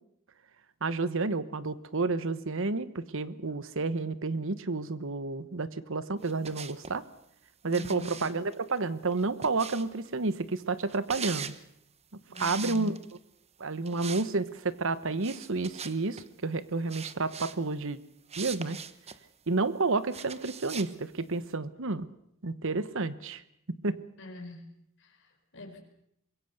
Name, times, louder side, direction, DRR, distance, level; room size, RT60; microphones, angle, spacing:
voice 1, 0.8-7.0 7.6-11.6 12.4-12.9 13.6-18.0 18.4-18.8 19.5-22.1 22.4-23.4 23.8-24.0, right 3 dB, 65° right, 14 dB, 1.1 m, -30 dB
sound 1, 6.2-7.0 7.7-10.1 10.9-11.6 12.3-13.2 13.8-14.3 14.5-14.7 15.2-16.3 16.9-17.6 18.3-19.2 20.1-20.9, right 7 dB, 30° right, 1.0 m, -41 dB
voice 2, 7.7-8.2 12.3-12.8 24.2-24.7 25.0-25.8, left 1 dB, 60° left, 2 dB, 4.4 m, -43 dB
24.5 x 21.5 x 6.7 m, 0.73 s
head